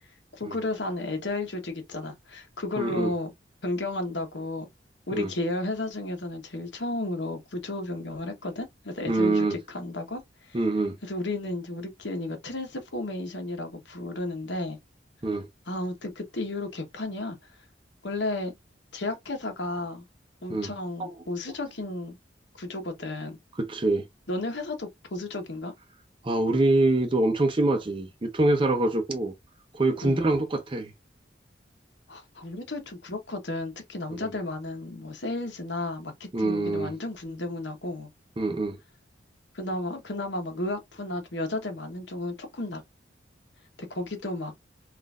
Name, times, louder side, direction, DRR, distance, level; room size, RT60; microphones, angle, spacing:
voice 1, 0.3-3.3 3.6-4.7 5.1-10.6 11.0-14.8 15.7-17.4 18.0-18.5 18.9-20.0 20.4-22.2 22.6-23.4 24.3-25.7 30.0-30.2 32.1-38.1 39.5-42.8 43.9-44.5, left 2 dB, 75° left, 1.1 m, -33 dB
voice 2, 2.8-3.1 5.1-5.3 9.1-9.6 10.5-11.0 15.2-15.5 20.5-20.7 21.0-21.1 23.6-24.1 26.2-29.3 29.7-30.9 34.2-34.3 36.3-36.9 38.4-38.8, right 2 dB, 30° right, 0.6 m, -25 dB
3.8 x 2.5 x 2.4 m
head